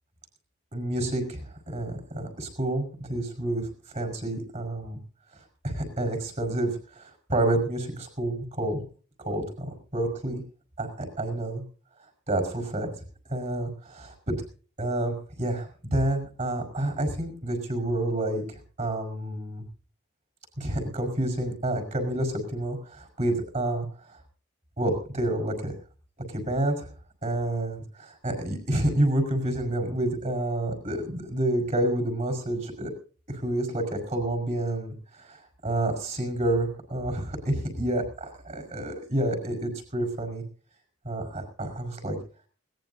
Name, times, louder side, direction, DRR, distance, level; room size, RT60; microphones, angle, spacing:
voice 1, 0.7-5.0 5.6-8.8 9.2-10.4 10.8-11.6 12.3-12.9 13.3-14.3 14.8-19.6 20.6-23.9 24.8-25.7 26.3-26.9 27.2-32.9 33.3-40.4 41.0-42.2, right 1 dB, 35° right, 4 dB, 5.3 m, -29 dB
21.0 x 18.0 x 2.8 m, 0.40 s
head